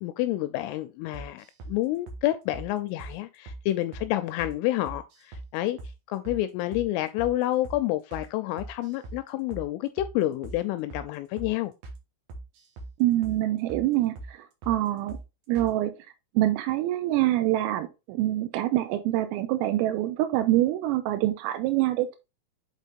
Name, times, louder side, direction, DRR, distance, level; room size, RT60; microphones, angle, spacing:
voice 1, 0.0-5.8 6.1-11.7, left 15 dB, 85° left, 2.8 m, -29 dB
sound 1, 1.1-1.8 2.1-2.2 2.5-2.7 3.0-3.2 3.5-3.6 3.9-4.1 4.4-4.5 4.9-5.5 5.8-5.9 6.2-6.4 6.7-6.9 7.2-7.3 7.6-7.8 8.1-8.3 8.6-9.2 9.5-9.7 10.0-10.1 10.4-10.6 10.9-11.1 11.4-11.5 11.8-12.0 12.3-12.9 13.2-13.4 13.7-13.9 14.2-14.3 14.6-14.8 15.1-15.2 15.5-15.7, right 2 dB, 70° right, 2.2 m, -40 dB
voice 2, 13.0-15.2 15.5-15.9 16.4-22.2, right 14 dB, 90° right, 3.3 m, -25 dB
8.2 x 4.2 x 3.5 m
omnidirectional pair, 6.0 m